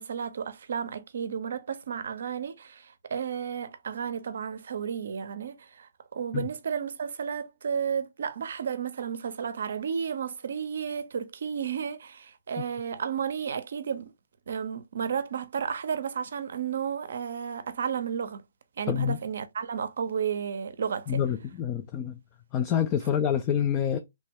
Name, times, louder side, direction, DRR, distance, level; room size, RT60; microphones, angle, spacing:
voice 1, 0.0-14.1 14.5-18.4 18.8-21.2, right 7 dB, 65° right, 0.5 m, -32 dB
voice 2, 18.9-19.2 21.1-22.2 22.5-24.0, left 9 dB, 25° left, 0.4 m, -27 dB
3.1 x 2.1 x 3.4 m
hypercardioid pair, 140°, 0 cm